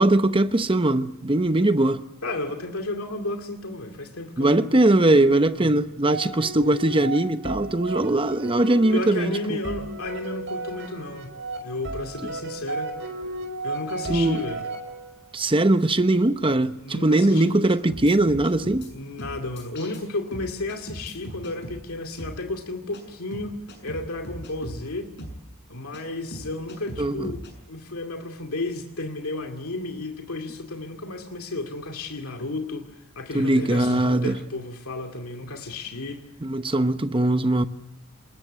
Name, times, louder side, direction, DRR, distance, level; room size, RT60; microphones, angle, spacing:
voice 1, 0.0-2.0 4.4-9.4 14.1-14.4 15.3-18.9 27.0-27.3 33.3-34.4 36.4-37.7, right 2 dB, 25° right, 0.9 m, -21 dB
voice 2, 2.2-4.7 5.5-5.7 8.9-11.3 11.6-12.9 13.6-14.7 16.8-17.6 18.9-25.1 25.7-36.2, left 2 dB, 75° left, 2.3 m, -33 dB
sound 1, 6.1-15.3, right 2 dB, 55° right, 5.9 m, -35 dB
sound 2, 17.7-18.9 19.2-20.0 20.3-21.8 22.2-22.4 22.9-23.0 23.3-24.8 25.2-25.4 25.9-26.0 26.3-27.5, equal, 55° left, 6.9 m, -38 dB
27.5 x 21.0 x 8.2 m
head